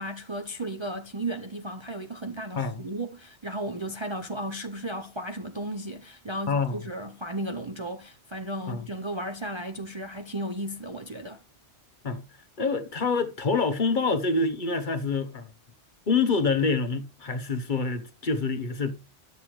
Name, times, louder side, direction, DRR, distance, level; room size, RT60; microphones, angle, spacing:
voice 1, 0.0-11.4, right 1 dB, 30° right, 0.6 m, -34 dB
voice 2, 6.5-6.8 8.7-8.8 12.0-12.2 12.6-15.4 16.1-18.9, left 4 dB, 45° left, 1.1 m, -26 dB
10.5 x 7.4 x 3.1 m
omnidirectional pair, 1.2 m